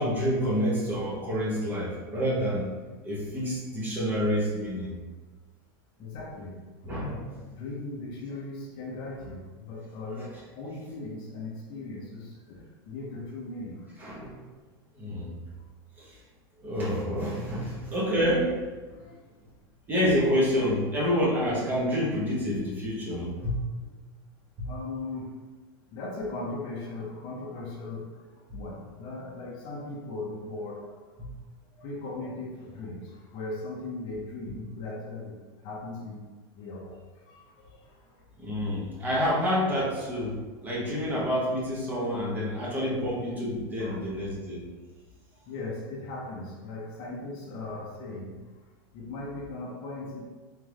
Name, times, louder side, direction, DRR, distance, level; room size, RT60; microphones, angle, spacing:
voice 1, 0.0-2.7 3.0-5.0 6.8-7.3 14.0-14.5 14.9-15.3 16.0-16.2 16.6-18.6 19.9-23.6 24.6-24.7 31.2-31.3 38.4-44.7, equal, 15° right, -5 dB, 1.0 m, -28 dB
voice 2, 6.0-13.9 18.9-19.2 23.4-23.5 24.6-25.4 25.9-31.1 31.8-35.4 35.6-38.2 42.0-42.2 42.5-42.9 43.8-44.1 45.4-48.4 48.9-50.2, left 2 dB, 35° left, -3 dB, 0.7 m, -39 dB
3.6 x 3.3 x 3.4 m, 1.3 s
supercardioid pair, 155°, 13 cm